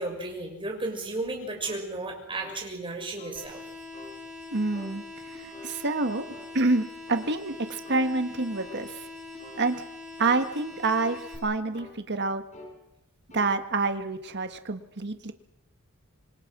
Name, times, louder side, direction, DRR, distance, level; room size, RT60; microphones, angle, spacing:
voice 1, 0.0-3.6, right 2 dB, 25° right, 2 dB, 6.1 m, -34 dB
sound 1, 1.6-1.9 2.4-2.6 3.2-3.4 3.9-4.2 4.7-4.9 5.5-5.7 6.3-6.5 7.1-7.3 7.8-8.1 8.6-8.9 9.4-9.6 10.2-10.4 10.9-11.2 11.7-12.0 12.5-12.8 13.3-13.5, left 2 dB, 35° left, 5.7 m, -46 dB
sound 2, 3.4-11.4, left 3 dB, 5° right, 7.3 m, -43 dB
voice 2, 4.5-6.3 6.5-9.1 9.6-9.8 10.2-12.4 13.3-15.3, right 3 dB, 50° right, 8 dB, 1.7 m, -28 dB
27.0 x 24.0 x 6.2 m, 0.80 s
head